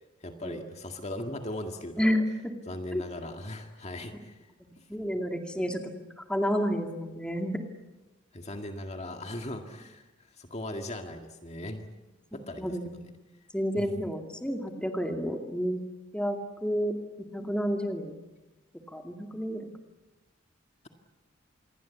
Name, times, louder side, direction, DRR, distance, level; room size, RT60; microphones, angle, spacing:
voice 1, 0.2-2.1 2.7-4.3 4.8-4.9 8.3-10.1 10.4-11.9 12.3-13.1 13.8-13.9, left 1 dB, 35° left, 4 dB, 2.0 m, -38 dB
voice 2, 2.0-2.5 2.9-3.0 4.6-5.8 6.3-7.6 12.3-13.0 13.5-15.8 16.1-16.9 17.3-18.1 18.9-19.7, equal, 5° left, 3 dB, 2.4 m, -30 dB
27.5 x 22.5 x 8.5 m, 1.1 s
head